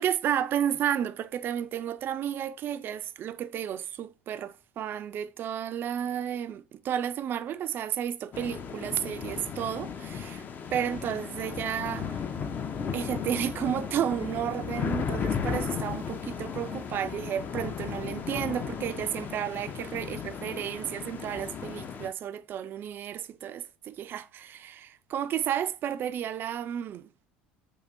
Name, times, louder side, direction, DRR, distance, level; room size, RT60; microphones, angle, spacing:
voice 1, 0.0-10.4 10.7-12.2 12.9-27.1, right 9 dB, 40° right, 0.3 m, -32 dB
sound 1, 8.3-22.1, left 6 dB, 35° left, 0.4 m, -35 dB
4.6 x 2.3 x 2.5 m
figure-of-eight pair, 70°, 6 cm